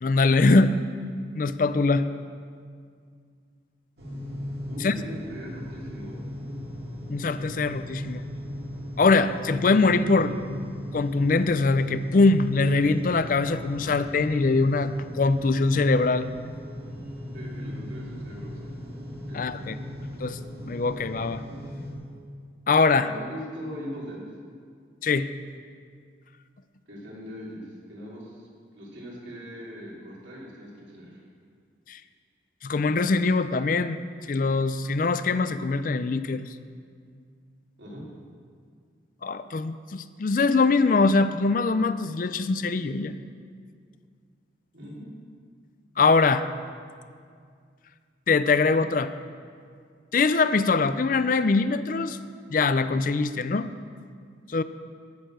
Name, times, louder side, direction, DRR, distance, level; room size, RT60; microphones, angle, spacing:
voice 1, 0.0-0.7 1.4-2.1 4.8-4.9 7.1-8.2 9.0-10.4 10.9-16.3 19.3-19.8 20.2-20.4 20.7-21.4 22.7-23.1 25.0-25.3 31.9-32.0 32.6-34.0 34.3-36.5 39.2-43.1 46.0-46.4 48.3-49.1 50.1-52.2 52.5-53.7 54.5-54.6, left 3 dB, 45° left, 12 dB, 0.4 m, -22 dB
sound 1, 4.0-21.9, left 1 dB, 55° right, 2.5 m, -37 dB
voice 2, 4.7-6.2 17.3-18.8 19.3-19.6 22.9-24.2 26.9-28.5 28.7-31.2 37.8-38.0 44.7-45.0, equal, 80° right, -5 dB, 3.3 m, -40 dB
15.0 x 6.6 x 6.4 m, 2.1 s
head